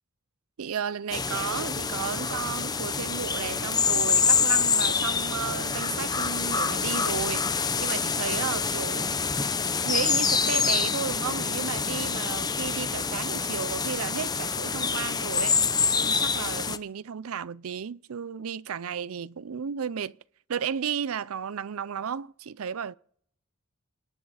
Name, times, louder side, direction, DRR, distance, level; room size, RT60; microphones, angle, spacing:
voice 1, 0.6-9.1 9.8-15.6 16.0-20.1 20.5-23.0, right 7 dB, 75° right, 0.5 m, -33 dB
sound 1, 1.1-16.8, left 5 dB, 20° left, 0.7 m, -26 dB
28.5 x 10.0 x 4.1 m
head